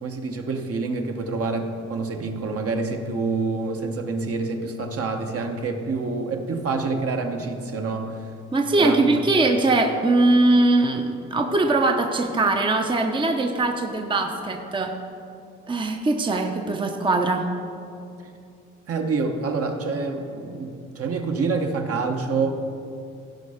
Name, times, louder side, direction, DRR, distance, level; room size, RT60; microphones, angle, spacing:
voice 1, 0.0-8.3 8.8-9.5 18.9-22.5, right 4 dB, 50° right, 4 dB, 1.1 m, -27 dB
voice 2, 8.5-14.9 15.7-17.5, right 2 dB, 15° right, 3 dB, 0.7 m, -21 dB
16.0 x 5.4 x 5.0 m, 2.6 s
cardioid pair, 90°, 30 cm